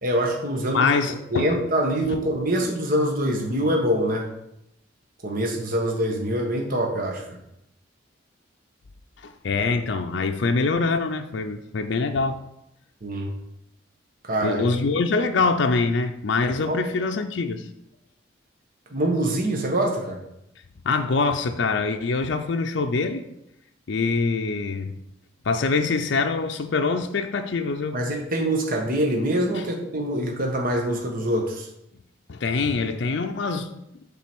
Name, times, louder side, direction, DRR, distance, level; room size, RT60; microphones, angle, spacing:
voice 1, 0.0-0.9 1.3-4.3 5.2-7.4 13.0-13.3 14.2-14.8 16.7-16.8 18.9-20.2 27.9-31.7, right 1 dB, 50° right, 0 dB, 1.2 m, -24 dB
voice 2, 0.7-1.5 2.1-2.2 9.2-12.4 14.4-17.7 20.8-23.3 23.9-24.9 25.4-28.0 29.5-29.6 32.3-33.7, left 4 dB, 65° left, 5 dB, 0.5 m, -24 dB
7.5 x 3.9 x 6.0 m, 0.82 s
head